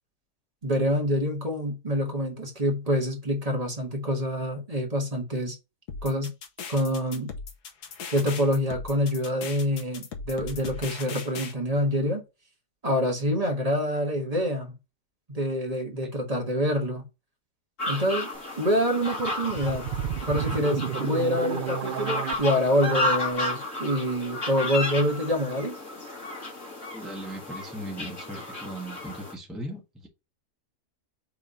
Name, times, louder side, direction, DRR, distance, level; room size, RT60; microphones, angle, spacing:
voice 1, 0.6-5.5 6.0-6.3 6.7-7.3 8.1-12.2 12.8-14.7 15.3-17.1 17.9-18.3 18.6-19.8 20.3-25.8, equal, 25° right, 1.6 m, -26 dB
sound 1, 5.9-11.5, left 5 dB, 80° left, 1.6 m, -38 dB
sound 2, 17.8-29.3, left 1 dB, 50° left, 2.5 m, -33 dB
sound 3, 19.1-22.4, right 8 dB, 75° right, 0.4 m, -31 dB
voice 2, 26.9-30.1, right 1 dB, ahead, 1.3 m, -38 dB
4.8 x 3.6 x 5.4 m
omnidirectional pair, 1.7 m